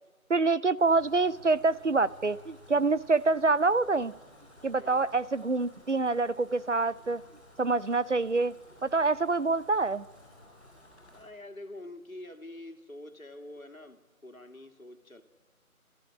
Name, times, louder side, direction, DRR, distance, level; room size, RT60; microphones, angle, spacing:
voice 1, 0.3-4.1 4.6-7.2 7.6-8.5 8.8-10.0, right 3 dB, 55° right, 18 dB, 0.5 m, -26 dB
sound 1, 0.8-11.2, left 1 dB, 5° left, 4.3 m, -55 dB
voice 2, 4.8-5.1 11.1-15.2, left 1 dB, 70° left, 6 dB, 2.2 m, -46 dB
28.5 x 14.0 x 7.3 m, 1.4 s
figure-of-eight pair, 170°, 43 cm